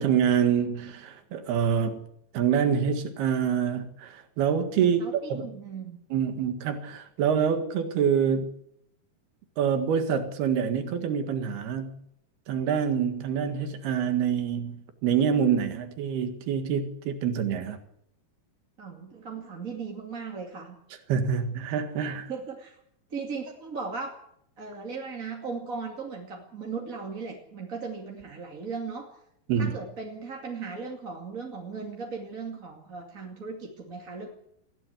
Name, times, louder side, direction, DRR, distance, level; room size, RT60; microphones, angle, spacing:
voice 1, 0.0-2.1 2.3-5.5 6.1-8.5 9.6-11.9 12.5-17.8 21.1-22.3 29.5-29.8, right 7 dB, 80° right, 7 dB, 3.8 m, -26 dB
voice 2, 4.8-6.0 18.8-20.8 22.3-22.8 23.1-24.1 24.6-29.2 29.6-34.3, right 5 dB, 25° right, -1 dB, 2.2 m, -37 dB
20.5 x 15.5 x 8.2 m, 0.73 s
omnidirectional pair, 4.5 m